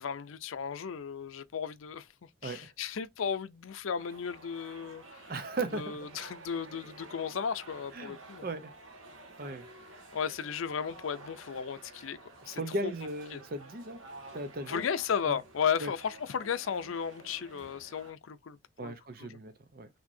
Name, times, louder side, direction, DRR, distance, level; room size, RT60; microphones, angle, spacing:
voice 1, 0.0-2.1 2.4-5.3 5.7-8.5 10.1-12.2 12.5-12.9 13.3-13.4 14.7-18.6 18.8-18.9 19.2-19.4, left 7 dB, 90° left, 0.5 m, -35 dB
sound 1, 4.0-18.1, right 2 dB, 85° right, 1.5 m, -51 dB
voice 2, 5.3-6.0 7.9-8.2 8.4-8.7 9.4-9.7 12.4-14.0 14.3-14.9 15.2-15.4 15.8-15.9 18.8-19.9, right 2 dB, 45° right, 0.6 m, -37 dB
6.1 x 2.8 x 2.6 m
head